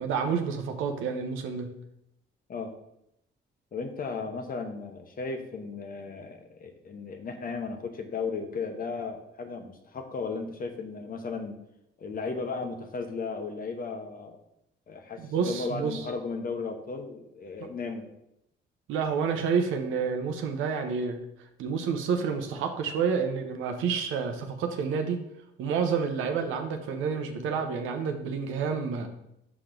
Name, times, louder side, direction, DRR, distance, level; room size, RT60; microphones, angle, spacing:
voice 1, 0.0-1.7 15.2-16.0 18.9-21.2 21.6-25.2 25.6-29.1, right 6 dB, 90° right, 5 dB, 0.8 m, -29 dB
voice 2, 3.7-11.6 12.0-14.4 14.9-18.1, left 4 dB, 45° left, 6 dB, 1.0 m, -35 dB
6.0 x 5.0 x 3.8 m, 0.80 s
cardioid pair, 90°, 20 cm